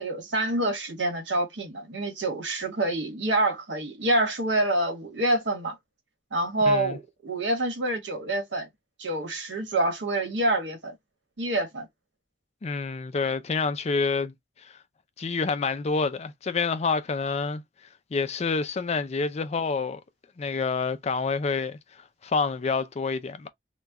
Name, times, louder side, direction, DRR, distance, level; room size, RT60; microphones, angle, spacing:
voice 1, 0.0-5.8 6.3-8.7 9.0-11.0 11.4-11.9, right 1 dB, 85° right, 1.3 m, -27 dB
voice 2, 6.7-7.0 12.6-14.3 14.6-14.7 15.2-17.6 18.1-20.0 20.4-21.8 22.2-23.5, left 4 dB, 35° left, 0.4 m, -27 dB
3.0 x 2.3 x 3.5 m
head